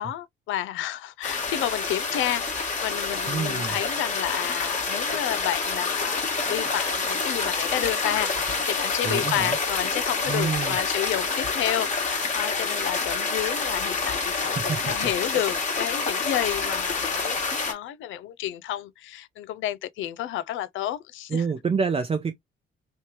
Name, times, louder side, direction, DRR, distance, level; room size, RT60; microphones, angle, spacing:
voice 1, 0.0-21.4, left 12 dB, 80° left, 0.4 m, -31 dB
sound 1, 1.2-17.7, left 4 dB, 35° left, 1.4 m, -27 dB
voice 2, 3.3-3.8 9.0-9.6 10.3-10.8 14.3-14.9 21.3-22.3, right 5 dB, 30° right, 0.6 m, -28 dB
3.3 x 3.1 x 2.8 m
cardioid pair, 90°, 20 cm